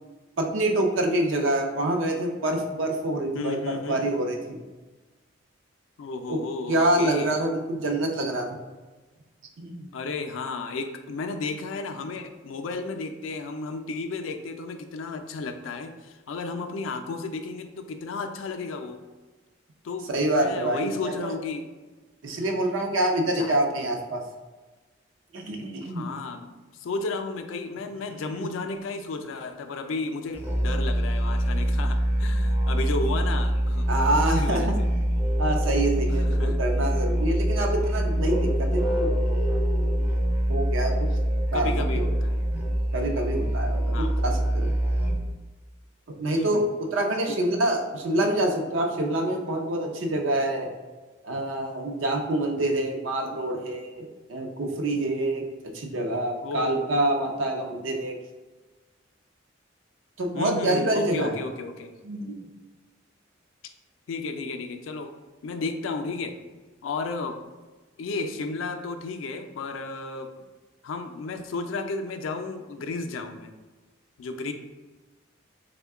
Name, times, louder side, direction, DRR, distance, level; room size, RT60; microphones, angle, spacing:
voice 1, 0.4-4.6 6.3-6.4 6.7-8.5 9.6-9.9 20.1-21.3 22.2-24.2 25.3-26.1 28.4-28.5 33.9-34.7 35.4-39.1 40.5-40.9 41.5-42.0 42.9-44.7 46.2-50.7 51.2-58.2 60.2-61.3 62.0-62.4, right 1 dB, 75° right, 2 dB, 0.5 m, -26 dB
voice 2, 3.3-4.0 6.0-7.3 9.9-19.0 19.8-21.7 23.3-23.9 25.8-33.8 34.2-34.7 36.2-36.6 41.5-42.4 43.9-44.2 46.3-46.7 47.3-47.4 56.4-56.9 60.3-61.9 64.1-65.1 65.4-66.3 66.8-67.4 68.0-70.3 70.8-73.5 74.2-74.5, left 3 dB, 80° left, 6 dB, 0.4 m, -33 dB
Musical instrument, 30.3-45.4, equal, 10° right, 0.4 m, -24 dB
3.5 x 2.2 x 3.4 m, 1.2 s
head